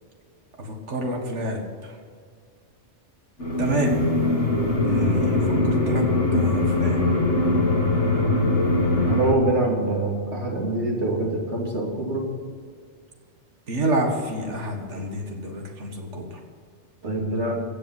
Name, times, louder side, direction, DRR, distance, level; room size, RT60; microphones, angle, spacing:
voice 1, 0.6-1.9 3.6-4.0 4.8-7.0 13.7-16.4, right 1 dB, 90° right, 3 dB, 2.1 m, -28 dB
sound 1, 3.4-9.3, left 2 dB, 85° left, 1.9 m, -21 dB
voice 2, 9.0-12.3 17.0-17.6, right 2 dB, 75° right, -2 dB, 3.1 m, -25 dB
15.5 x 6.9 x 7.8 m, 2.1 s
omnidirectional pair, 1.2 m